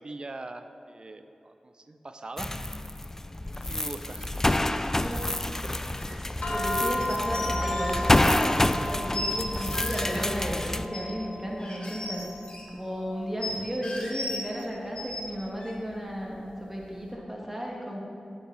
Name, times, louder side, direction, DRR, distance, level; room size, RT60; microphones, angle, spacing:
voice 1, 0.0-2.5 3.5-4.3, right 2 dB, 45° right, 9 dB, 0.5 m, -42 dB
sound 1, 2.4-10.8, left 1 dB, 20° left, 0.3 m, -28 dB
voice 2, 4.9-5.3 6.5-12.2 12.7-18.0, equal, 10° right, -3 dB, 1.9 m, -34 dB
sound 2, 6.0-6.2 6.9-8.6 9.1-9.4 9.7-10.2 10.9-11.2 11.6-12.6 13.4-14.6 15.0-15.2 15.6-15.7, left 2 dB, 50° left, 1.4 m, -37 dB
sound 3, 6.4-16.9, left 1 dB, 70° left, 1.2 m, -36 dB
8.7 x 7.0 x 4.0 m, 2.8 s
cardioid pair, 50°, 2 cm